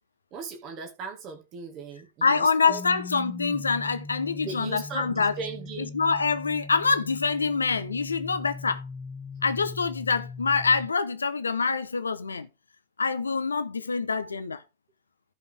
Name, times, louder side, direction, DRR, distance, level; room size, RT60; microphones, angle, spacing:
voice 1, 0.3-2.8 4.4-5.9, right 5 dB, 35° right, 2.1 m, -38 dB
voice 2, 2.2-5.3 5.8-8.8 9.4-12.5 13.0-14.6, left 5 dB, 75° left, 1.0 m, -25 dB
sound 1, 2.7-10.9, left 4 dB, 15° left, 0.9 m, -40 dB
15.5 x 5.4 x 3.6 m
figure-of-eight pair, 90°, 0 cm